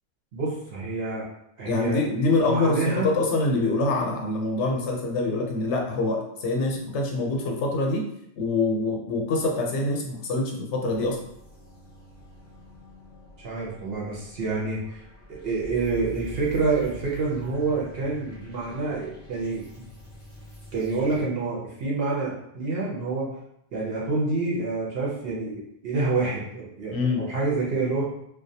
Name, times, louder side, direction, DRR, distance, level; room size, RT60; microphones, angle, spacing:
voice 1, 0.3-1.3 1.6-2.0 2.4-3.1 13.4-15.0 15.3-19.7 20.7-23.3 23.7-28.0, right 3 dB, 65° right, -5 dB, 0.9 m, -27 dB
voice 2, 1.6-8.1 8.4-11.2 26.9-27.2, left 2 dB, 85° left, 1 dB, 0.9 m, -25 dB
sound 1, 10.9-21.2, equal, 15° left, 0.6 m, -45 dB
2.3 x 2.2 x 2.6 m, 0.77 s
omnidirectional pair, 1.1 m